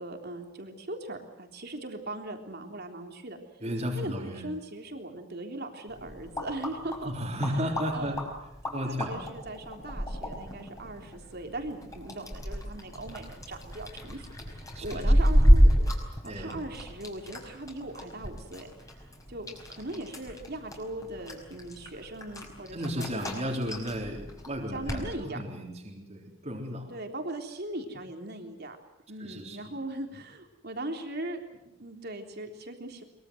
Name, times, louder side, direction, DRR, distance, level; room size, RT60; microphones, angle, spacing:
voice 1, 0.0-3.4 3.9-7.1 7.9-8.2 8.6-15.9 16.2-18.7 19.3-23.3 24.7-25.4 26.9-28.8 29.1-31.4 31.8-33.0, right 1 dB, 50° right, 4 dB, 3.6 m, -39 dB
voice 2, 3.6-4.5 7.0-8.2 8.7-9.2 14.7-15.3 16.2-16.6 22.7-26.9 29.2-29.6, equal, 30° right, -1 dB, 3.9 m, -34 dB
sound 1, 5.9-25.0, equal, 15° left, 5.2 m, -29 dB
23.5 x 23.0 x 7.9 m, 0.88 s
head